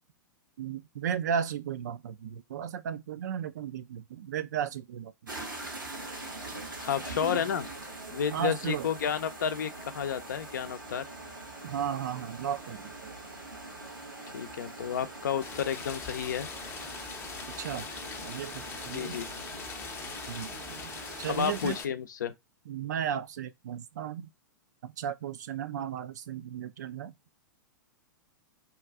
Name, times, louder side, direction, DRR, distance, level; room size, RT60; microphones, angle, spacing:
voice 1, 0.6-5.1 5.4-5.5 8.3-8.9 11.6-13.1 17.6-17.9 18.2-19.2 20.3-21.8 22.7-24.3 24.8-27.1, right 8 dB, 60° right, 0.4 m, -35 dB
sound 1, 5.3-21.8, right 2 dB, 90° right, 1.2 m, -43 dB
voice 2, 6.8-7.7 8.1-11.0 14.3-16.5 18.9-19.3 21.2-22.3, left 8 dB, 65° left, 0.5 m, -31 dB
Rain, 15.4-21.8, left 5 dB, 20° left, 0.6 m, -42 dB
2.9 x 2.3 x 3.5 m
figure-of-eight pair, 100°, 11 cm